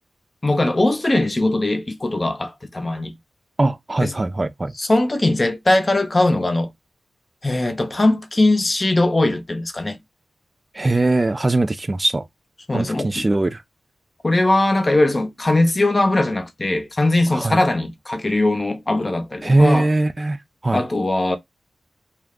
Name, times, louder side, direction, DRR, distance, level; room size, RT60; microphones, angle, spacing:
voice 1, 0.4-3.2 4.0-4.1 4.8-6.7 7.4-10.0 12.7-13.3 14.2-19.9 20.7-21.4, left 2 dB, 35° left, 0.7 m, -20 dB
voice 2, 3.6-4.7 10.7-12.2 12.7-13.6 17.3-17.6 19.4-20.4 20.6-20.8, right 2 dB, 35° right, 0.4 m, -20 dB
2.4 x 2.1 x 3.5 m
cardioid pair, 45°, 0 cm